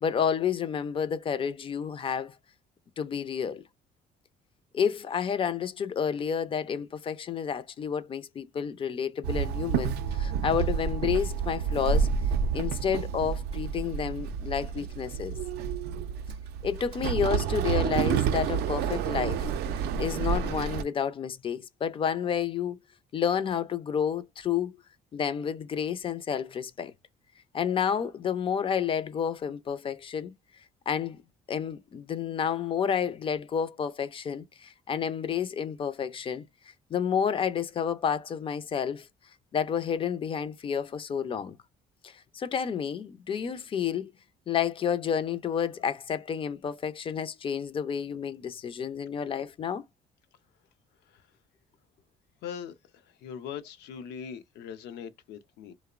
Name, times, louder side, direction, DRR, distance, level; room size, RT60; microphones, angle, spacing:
voice 1, 0.0-2.3 3.0-3.6 4.7-12.1 12.5-15.4 16.6-19.5 20.0-22.8 23.1-24.7 25.1-26.9 27.5-30.3 30.9-31.2 31.5-36.5 36.9-39.1 39.5-41.6 42.0-44.1 44.5-49.8, left 7 dB, 30° left, 0.4 m, -30 dB
Walk footsteps / Chatter / Hiss, 9.2-20.8, right 7 dB, 75° right, 0.4 m, -29 dB
voice 2, 52.4-55.7, left 8 dB, 85° left, 0.5 m, -41 dB
2.8 x 2.0 x 2.3 m
cardioid pair, 110°, 17 cm